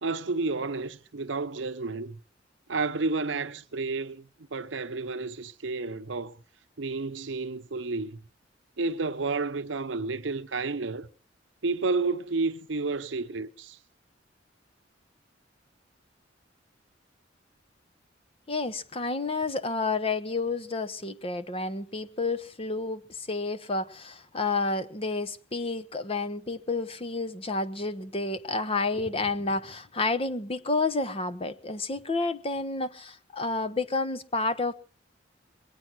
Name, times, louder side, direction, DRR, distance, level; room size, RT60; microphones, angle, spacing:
voice 1, 0.0-2.2 2.7-6.4 6.8-8.2 8.8-11.1 11.6-13.8, right 3 dB, 80° right, 0.8 m, -31 dB
voice 2, 18.5-34.7, left 3 dB, 30° left, 0.9 m, -30 dB
22.5 x 8.8 x 6.1 m
head